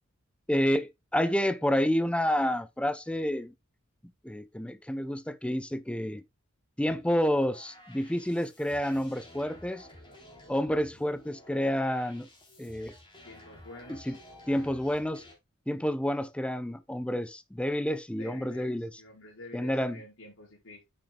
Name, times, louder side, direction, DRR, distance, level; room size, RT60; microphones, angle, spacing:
voice 1, 0.5-3.5 4.2-6.2 6.8-9.9 10.5-12.3 12.6-12.9 13.9-14.2 14.5-15.2 15.7-18.9 19.5-20.0, equal, 5° left, 0.7 m, -29 dB
sound 1, 6.9-15.3, left 1 dB, 25° left, 3.5 m, -53 dB
voice 2, 13.2-14.2 18.1-20.8, left 2 dB, 70° left, 4.9 m, -49 dB
9.5 x 7.8 x 2.3 m
head